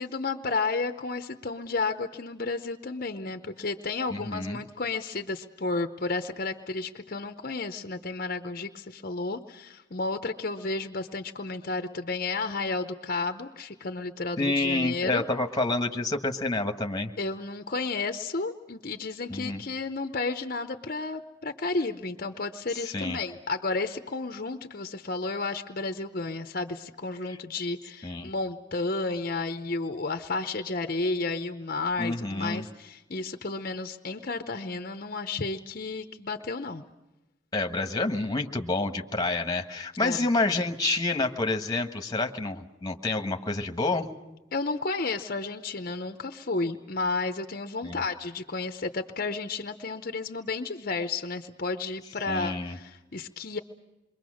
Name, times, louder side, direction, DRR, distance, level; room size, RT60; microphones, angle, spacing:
voice 1, 0.0-15.2 17.2-36.8 40.0-40.2 44.5-53.6, left 3 dB, 50° left, 8 dB, 0.9 m, -32 dB
voice 2, 4.1-4.6 14.4-17.1 19.3-19.6 22.7-23.2 27.3-27.4 28.0-28.3 32.0-32.6 37.5-44.1 47.8-48.0 52.3-52.8, left 2 dB, 20° left, 5 dB, 1.4 m, -28 dB
27.5 x 23.0 x 6.4 m, 1.0 s
head